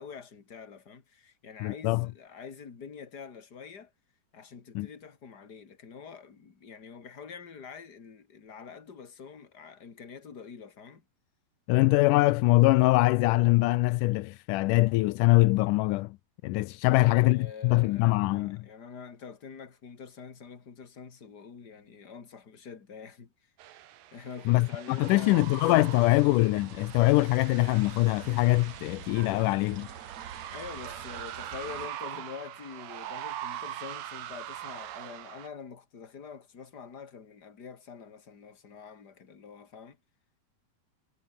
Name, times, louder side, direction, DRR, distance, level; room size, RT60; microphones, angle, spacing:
voice 1, 0.0-3.9 4.3-11.0 16.8-23.5 24.1-26.3 30.5-40.0, left 6 dB, 30° left, 2.7 m, -45 dB
voice 2, 1.6-2.1 4.7-4.9 11.7-16.2 16.4-18.6 24.5-29.9, left 20 dB, 90° left, 1.8 m, -23 dB
sound 1, 23.6-35.5, right 12 dB, 70° right, 3.1 m, -42 dB
sound 2, 25.0-31.9, right 7 dB, 50° right, 3.5 m, -46 dB
omnidirectional pair, 4.3 m